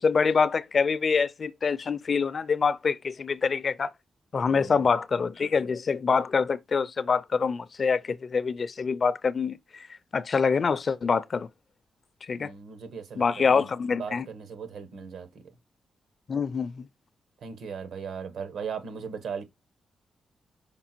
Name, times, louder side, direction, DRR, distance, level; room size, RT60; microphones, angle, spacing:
voice 1, 0.0-3.9 4.3-9.6 10.1-11.5 12.3-12.5 13.2-14.2 16.3-16.9, left 5 dB, 40° left, 0.4 m, -25 dB
voice 2, 4.4-4.9 12.3-13.7 14.0-15.4 17.4-19.4, right 6 dB, 90° right, 1.4 m, -38 dB
5.8 x 4.4 x 4.4 m
wide cardioid pair, 165°, 0 cm